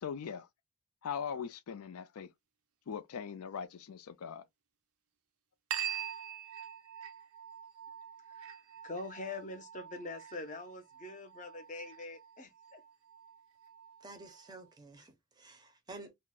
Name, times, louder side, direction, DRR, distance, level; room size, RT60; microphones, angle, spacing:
voice 1, 0.0-0.5 1.0-2.3 2.9-4.4, left 7 dB, 90° left, 0.4 m, -40 dB
sound 1, 5.7-14.7, right 9 dB, 85° right, 0.5 m, -45 dB
voice 2, 8.8-12.8, left 2 dB, 35° left, 0.5 m, -44 dB
voice 3, 14.0-16.1, right 2 dB, 20° right, 0.5 m, -51 dB
2.4 x 2.1 x 3.5 m
head